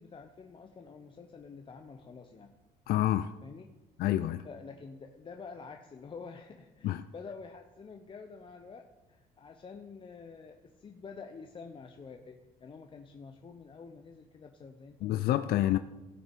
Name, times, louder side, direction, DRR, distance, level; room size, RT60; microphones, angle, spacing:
voice 1, 0.0-2.6 3.4-3.7 4.4-15.8, left 5 dB, 30° left, 4 dB, 0.7 m, -48 dB
voice 2, 2.9-3.3 4.0-4.5 6.8-7.1 15.0-15.8, left 13 dB, 65° left, 11 dB, 0.4 m, -28 dB
16.5 x 5.8 x 4.5 m, 1.1 s
cardioid pair, 110°, 17 cm